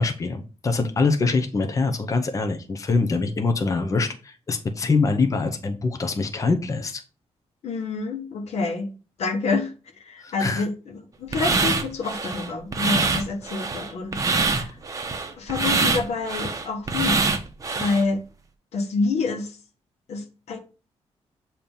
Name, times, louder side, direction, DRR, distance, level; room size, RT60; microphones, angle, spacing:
voice 1, 0.0-7.0 10.2-10.7, left 3 dB, 30° left, 0.7 m, -24 dB
voice 2, 7.6-8.9 9.2-14.8 15.4-17.3 17.7-18.2 18.7-19.6 20.1-20.6, left 4 dB, 75° left, 1.2 m, -28 dB
sound 1, 11.3-18.0, right 3 dB, 30° right, 0.8 m, -24 dB
7.1 x 2.9 x 5.3 m
cardioid pair, 115°, 11 cm